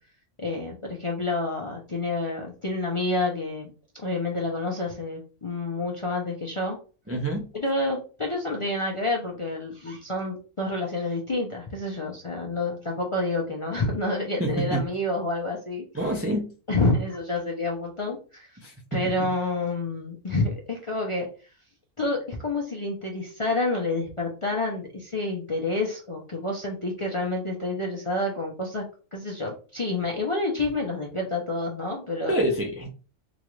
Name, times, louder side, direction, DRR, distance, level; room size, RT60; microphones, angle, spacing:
voice 1, 0.4-6.8 7.5-16.2 16.7-18.5 18.9-21.3 22.0-28.8 29.1-32.3, left 2 dB, 40° left, -1 dB, 0.5 m, -28 dB
voice 2, 7.1-7.4 14.4-14.8 15.9-16.5 18.6-19.1 32.3-32.9, right 1 dB, 25° right, 0 dB, 0.3 m, -27 dB
3.9 x 2.4 x 3.0 m, 0.36 s
omnidirectional pair, 1.3 m